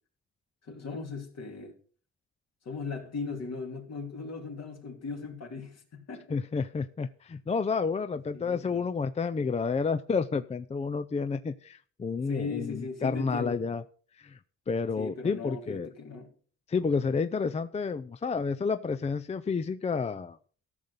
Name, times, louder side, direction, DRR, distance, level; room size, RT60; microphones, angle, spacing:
voice 1, 0.6-1.8 2.6-6.4 8.3-8.9 12.3-13.7 15.0-16.3, left 4 dB, 60° left, 2.9 m, -38 dB
voice 2, 6.3-13.8 14.2-14.4 14.7-15.9 16.7-20.4, left 5 dB, 20° left, 0.5 m, -30 dB
14.5 x 6.5 x 5.4 m
cardioid pair, 90°, 30 cm